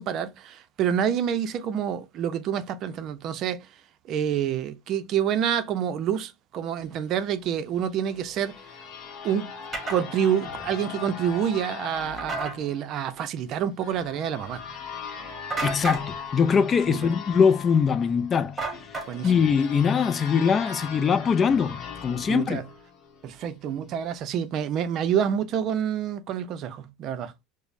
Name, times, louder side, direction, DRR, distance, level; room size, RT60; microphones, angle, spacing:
voice 1, 0.0-3.7 4.1-8.6 9.2-9.5 9.9-14.6 16.9-17.0 19.1-19.4 22.3-22.6 23.2-27.3, right 9 dB, 50° right, 0.5 m, -27 dB
sound 1, 7.7-23.4, left 6 dB, 45° left, 0.9 m, -40 dB
sound 2, 9.7-10.0 12.2-12.6 15.5-16.1 18.6-19.4, right 3 dB, 20° right, 1.1 m, -31 dB
voice 2, 15.6-18.6 19.2-22.6, left 6 dB, 30° left, 0.4 m, -22 dB
5.0 x 2.1 x 2.6 m
supercardioid pair, 105°, 0 cm